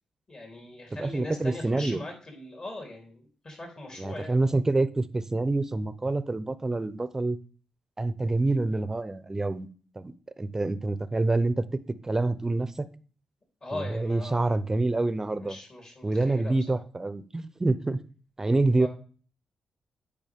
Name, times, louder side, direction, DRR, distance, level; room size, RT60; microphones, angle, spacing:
voice 1, 0.3-4.4 13.6-14.8 15.4-16.8 18.8-18.9, left 2 dB, 50° left, 3.5 m, -40 dB
voice 2, 1.0-2.0 4.0-7.4 8.0-9.7 10.0-11.6 12.0-12.9 13.7-15.6 16.0-18.0 18.4-18.9, right 2 dB, 25° right, 0.6 m, -27 dB
9.0 x 5.0 x 3.6 m
cardioid pair, 60°, 2 cm